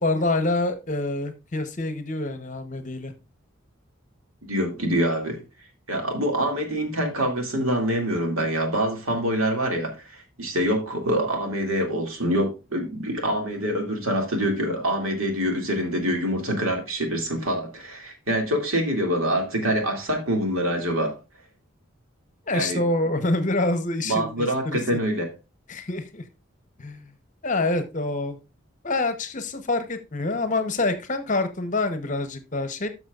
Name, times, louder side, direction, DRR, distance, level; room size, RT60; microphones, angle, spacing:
voice 1, 0.0-3.1 22.5-24.8 25.7-26.2 26.8-27.1 27.4-28.4 28.8-32.9, left 2 dB, 35° left, 0.9 m, -26 dB
voice 2, 4.5-5.4 5.9-21.2 22.5-22.8 24.0-25.3, equal, 80° right, 2.4 m, -25 dB
13.0 x 6.1 x 2.4 m
head